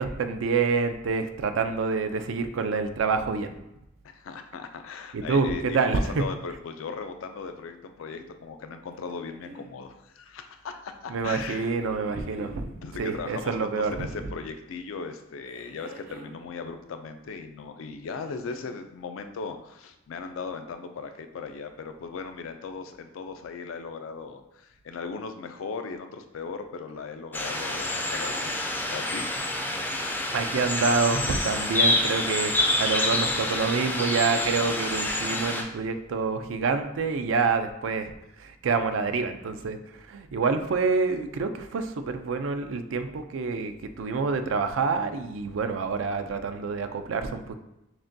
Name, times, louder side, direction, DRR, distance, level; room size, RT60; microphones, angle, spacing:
voice 1, 0.0-3.5 5.1-6.2 11.1-14.1 30.3-38.1 38.4-39.8 40.1-47.5, right 4 dB, 75° right, 8 dB, 0.4 m, -27 dB
voice 2, 4.0-12.0 12.7-28.5 28.9-29.3, left 5 dB, 80° left, 7 dB, 0.4 m, -38 dB
sound 1, 8.9-9.7 11.2-12.6 13.7-14.4 15.4-16.4 17.9-18.8 19.9-20.0, right 1 dB, 35° right, 0.6 m, -45 dB
sound 2, 27.3-35.6, left 1 dB, 10° left, 0.4 m, -27 dB
5.9 x 2.2 x 2.6 m, 0.88 s
head